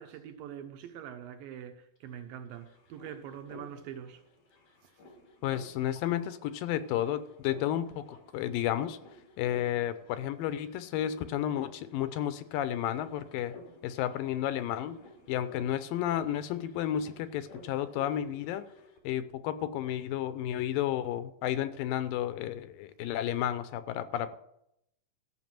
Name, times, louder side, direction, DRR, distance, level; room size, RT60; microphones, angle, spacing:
voice 1, 0.0-4.2, right 9 dB, 80° right, 2.8 m, -44 dB
sound 1, 2.0-2.1 2.2-19.0, left 2 dB, 65° left, 3.3 m, -54 dB
voice 2, 5.4-9.0 9.4-13.6 13.8-15.0 15.3-18.6 19.0-24.3, left 11 dB, 80° left, 2.5 m, -32 dB
14.0 x 6.0 x 7.5 m
omnidirectional pair, 4.0 m